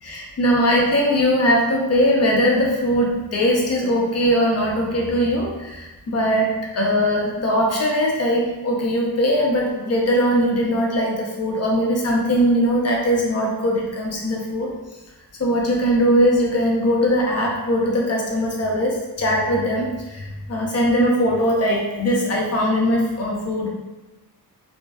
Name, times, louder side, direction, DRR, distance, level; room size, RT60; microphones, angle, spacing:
voice 1, 0.0-14.7 15.4-23.7, equal, 40° left, -2 dB, 0.7 m, -20 dB
2.5 x 2.1 x 2.2 m, 1.1 s
cardioid pair, 90°, 38 cm